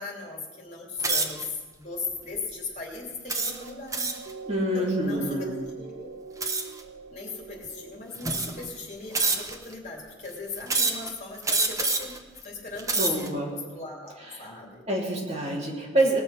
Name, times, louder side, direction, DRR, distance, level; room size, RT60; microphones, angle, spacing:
voice 1, 0.0-4.2 4.7-5.4 5.8-6.1 7.1-12.2 12.4-14.9, left 4 dB, 40° left, -1 dB, 3.0 m, -37 dB
sound 1, 1.0-1.5 2.1-2.4 3.3-4.3 6.4-6.8 7.6-7.7 8.2-8.7 9.1-9.7 10.7-11.1 11.4-12.2 12.7-13.3, right 3 dB, 15° right, 0.9 m, -27 dB
sound 2, 3.3-10.0 10.6-10.7, right 4 dB, 55° right, 1.3 m, -43 dB
voice 2, 4.5-5.5 13.0-13.5 14.2-14.4 14.9-16.2, right 1 dB, 35° right, -3 dB, 2.8 m, -26 dB
19.5 x 7.0 x 5.6 m, 1.3 s
head